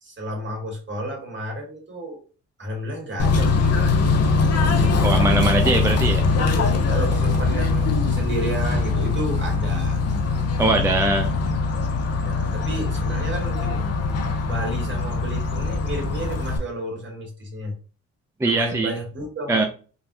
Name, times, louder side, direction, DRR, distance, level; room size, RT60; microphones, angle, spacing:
voice 1, 0.0-2.2 2.6-4.0 4.6-5.6 6.4-10.0 12.1-13.8 14.4-17.7 18.4-19.7, right 1 dB, 40° right, 1.8 m, -32 dB
Bird / Train, 3.2-16.6, left 3 dB, 55° left, 0.8 m, -22 dB
voice 2, 5.0-6.2 10.6-11.3 18.4-18.9 19.5-19.6, right 2 dB, 10° right, 0.4 m, -21 dB
3.8 x 2.4 x 2.8 m
cardioid pair, 90°, 30 cm